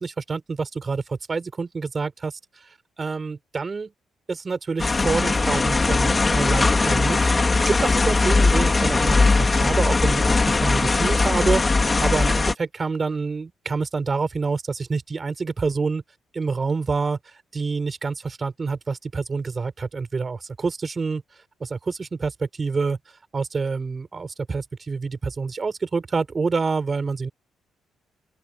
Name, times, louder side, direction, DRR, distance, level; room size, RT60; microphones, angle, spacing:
voice 1, 0.0-2.4 3.0-3.9 4.3-7.3 7.7-16.0 16.3-17.2 17.5-21.2 21.6-23.0 23.3-27.3, right 4 dB, 35° right, 6.6 m, -27 dB
sound 1, 4.8-12.5, left 3 dB, 25° left, 3.2 m, -19 dB
open air
cardioid pair, 90°, 0 cm